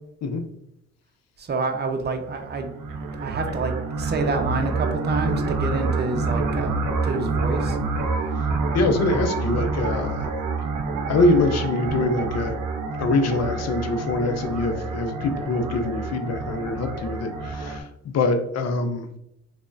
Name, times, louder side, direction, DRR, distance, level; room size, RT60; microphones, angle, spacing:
voice 1, 1.5-2.7 3.2-7.7, right 3 dB, 35° right, 5 dB, 0.7 m, -28 dB
sound 1, 2.2-17.8, right 3 dB, 85° right, 0.6 m, -27 dB
voice 2, 8.7-10.3 11.1-12.6 13.0-19.1, left 2 dB, 60° left, 7 dB, 0.6 m, -24 dB
3.4 x 3.2 x 2.6 m, 0.77 s
cardioid pair, 90°, 30 cm